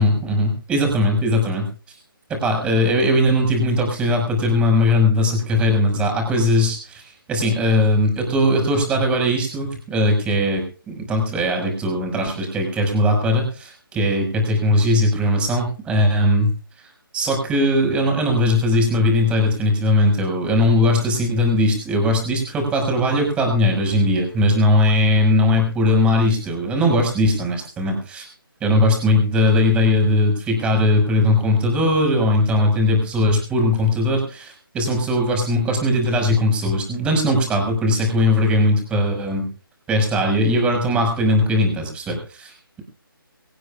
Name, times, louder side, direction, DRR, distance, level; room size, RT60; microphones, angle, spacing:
voice 1, 0.0-2.0 2.3-16.5 17.1-28.3 28.6-39.5 39.9-42.8, left 1 dB, 10° right, 2 dB, 6.2 m, -19 dB
25.5 x 17.0 x 2.5 m, 0.38 s
figure-of-eight pair, 155°, 12 cm